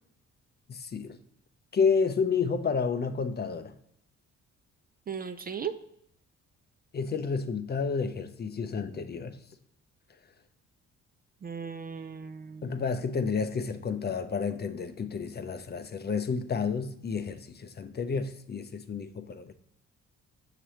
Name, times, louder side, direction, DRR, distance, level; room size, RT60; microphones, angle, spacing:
voice 1, 0.7-1.2 1.7-3.7 6.9-9.4 12.6-19.5, left 5 dB, 35° left, 0.5 m, -30 dB
voice 2, 5.1-5.7 11.4-12.8, right 7 dB, 30° right, 0.4 m, -37 dB
6.6 x 4.9 x 2.9 m
cardioid pair, 90°, 30 cm